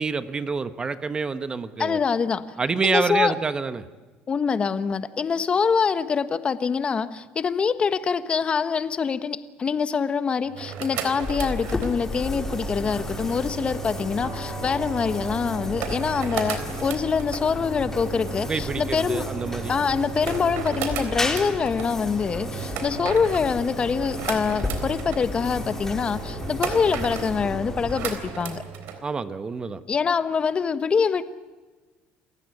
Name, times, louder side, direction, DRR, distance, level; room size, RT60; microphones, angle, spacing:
voice 1, 0.0-2.0 2.6-3.8 18.4-19.7 29.0-29.8, right 4 dB, 25° right, 11 dB, 1.2 m, -27 dB
voice 2, 1.8-2.4 2.8-3.4 4.3-19.3 19.7-28.6 29.9-31.2, left 5 dB, 30° left, 12 dB, 1.3 m, -25 dB
sound 1, 10.5-29.0, right 7 dB, 70° right, 3.8 m, -35 dB
sound 2, 11.2-28.6, left 2 dB, 10° left, 3.5 m, -34 dB
sound 3, 14.2-20.1, equal, 45° right, 7.9 m, -46 dB
28.0 x 15.5 x 9.8 m, 1.3 s
cardioid pair, 110°, 4 cm